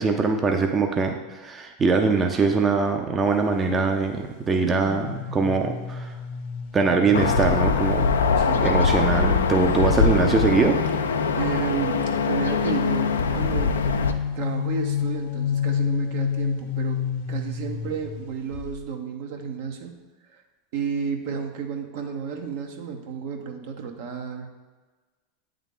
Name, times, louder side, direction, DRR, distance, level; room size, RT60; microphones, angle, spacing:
voice 1, 0.0-6.1 6.7-8.1 8.6-10.8, right 4 dB, 25° right, 4 dB, 0.5 m, -22 dB
sound 1, 4.5-8.1 8.7-12.0 13.0-18.2 18.5-18.8, left 7 dB, 60° left, 0.7 m, -30 dB
sound 2, 7.1-14.1, left 5 dB, 85° left, 0.4 m, -22 dB
voice 2, 8.4-8.7 11.4-13.9 14.3-17.0 17.3-19.9 20.3-20.4 20.7-24.5, right 6 dB, 65° right, 3 dB, 0.8 m, -31 dB
8.2 x 3.5 x 3.7 m, 1.3 s
hypercardioid pair, 95°, 0 cm